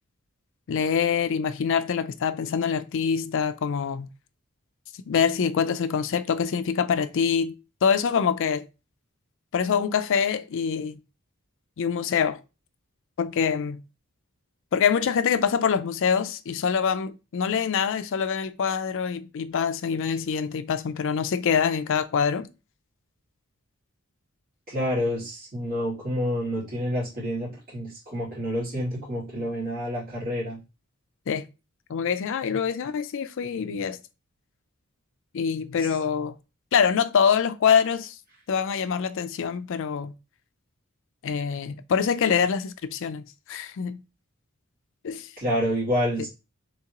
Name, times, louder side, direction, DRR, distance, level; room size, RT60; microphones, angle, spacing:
voice 1, 0.7-4.1 5.1-7.5 7.8-8.6 9.5-11.0 11.8-12.4 13.2-13.8 14.7-22.5 31.3-31.4 31.9-34.0 35.3-36.3 36.7-38.1 38.5-40.1 41.2-43.2 43.5-44.0 45.0-45.3, left 6 dB, 60° left, 0.4 m, -25 dB
voice 2, 24.7-30.6 35.8-35.9 45.4-46.3, equal, 45° right, 2.5 m, -28 dB
3.6 x 3.6 x 2.9 m
head